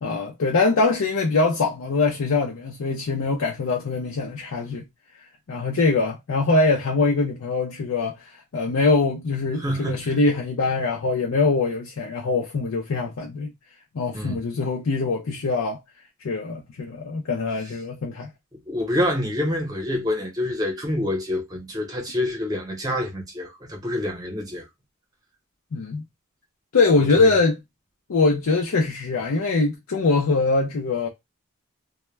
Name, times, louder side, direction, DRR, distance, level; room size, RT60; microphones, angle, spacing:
voice 1, 0.0-4.9 5.5-13.5 13.9-15.8 16.2-18.3 25.7-26.0 26.7-27.6 28.1-31.1, left 3 dB, 80° left, 0.5 m, -23 dB
voice 2, 9.6-10.2 14.1-14.4 18.7-24.6 27.2-27.3, left 1 dB, 15° right, 0.7 m, -27 dB
2.1 x 2.1 x 3.1 m
head